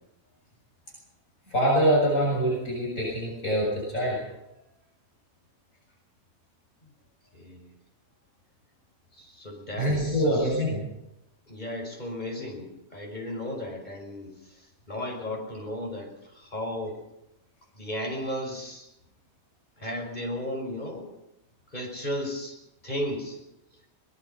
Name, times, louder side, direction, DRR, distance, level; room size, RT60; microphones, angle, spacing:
voice 1, 1.5-4.2 9.8-10.8, equal, 65° left, -4 dB, 7.6 m, -24 dB
voice 2, 7.3-7.7 9.1-10.6 11.5-14.3 14.9-17.0 17.7-18.9 19.8-21.1 21.7-22.6 22.8-23.4, left 1 dB, 30° left, 2 dB, 5.8 m, -34 dB
23.0 x 21.0 x 5.7 m, 0.85 s
omnidirectional pair, 1.5 m